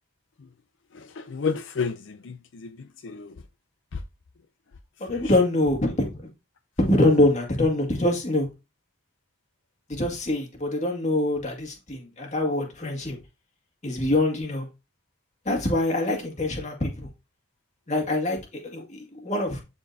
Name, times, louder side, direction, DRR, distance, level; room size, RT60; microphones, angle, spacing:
voice 1, 0.9-3.4 3.9-4.0 5.1-5.3, left 5 dB, 70° left, 0.5 m, -32 dB
voice 2, 5.0-6.1 6.8-8.5 9.9-13.2 13.8-14.7 15.5-17.1 17.9-19.6, left 1 dB, 35° left, 2.0 m, -24 dB
12.0 x 4.3 x 2.7 m
head